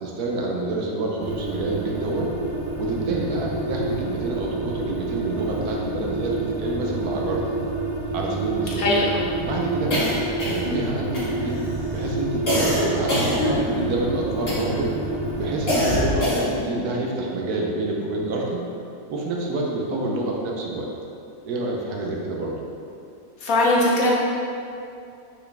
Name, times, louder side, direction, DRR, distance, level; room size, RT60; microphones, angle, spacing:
voice 1, 0.0-2.3 2.8-7.4 8.1-8.9 9.4-10.1 10.4-11.6 11.9-14.9 15.3-18.7 19.1-20.9 21.4-22.6, right 2 dB, 75° right, -1 dB, 1.4 m, -28 dB
sound 1, 1.2-15.9, right 2 dB, 25° right, 0.8 m, -28 dB
voice 2, 8.8-9.3 23.4-24.1, left 2 dB, 65° left, -4 dB, 1.5 m, -20 dB
sound 2, 9.9-10.8 11.1-11.7 12.5-13.9 14.5-14.9 15.7-16.7, left 1 dB, 40° left, 1.7 m, -24 dB
6.2 x 5.6 x 3.4 m, 2.5 s
omnidirectional pair, 1.6 m